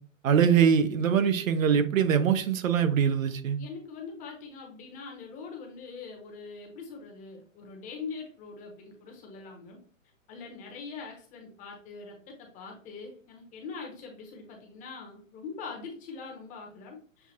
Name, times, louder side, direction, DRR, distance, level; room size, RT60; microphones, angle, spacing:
voice 1, 0.2-3.6, right 7 dB, 75° right, 10 dB, 0.7 m, -23 dB
voice 2, 3.6-9.8 10.3-17.3, left 4 dB, 20° left, 1 dB, 0.9 m, -43 dB
6.8 x 2.4 x 2.8 m, 0.43 s
hypercardioid pair, 140°, 40 cm